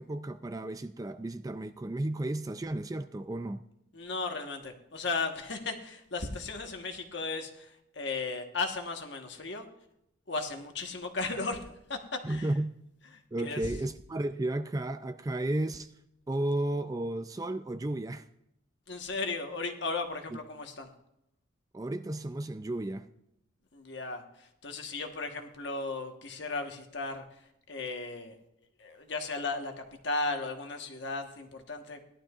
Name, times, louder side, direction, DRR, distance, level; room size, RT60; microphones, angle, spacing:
voice 1, 0.0-3.6 12.2-12.7 13.3-15.9 16.3-18.3 20.3-20.4 21.7-23.1, right 1 dB, 20° right, 0.3 m, -33 dB
voice 2, 3.9-9.7 10.3-12.5 13.1-13.7 18.9-20.9 23.7-28.3 28.8-32.0, left 3 dB, 60° left, 1.3 m, -36 dB
17.5 x 12.0 x 2.5 m
head